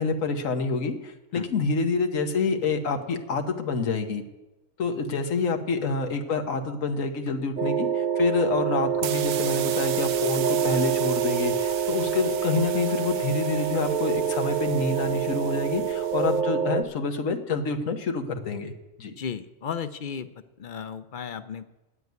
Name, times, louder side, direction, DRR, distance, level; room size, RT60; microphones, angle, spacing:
voice 1, 0.0-4.2 4.8-18.7 19.0-19.1, left 4 dB, 85° left, 5 dB, 1.5 m, -27 dB
sound 1, 7.6-16.8, right 8 dB, 45° right, 0.6 m, -26 dB
sound 2, 8.9-16.4, right 10 dB, 85° right, 1.0 m, -37 dB
voice 2, 19.2-20.3 20.6-21.6, left 7 dB, 55° left, 12 dB, 0.6 m, -34 dB
9.2 x 8.1 x 9.4 m, 1.0 s
omnidirectional pair, 1.4 m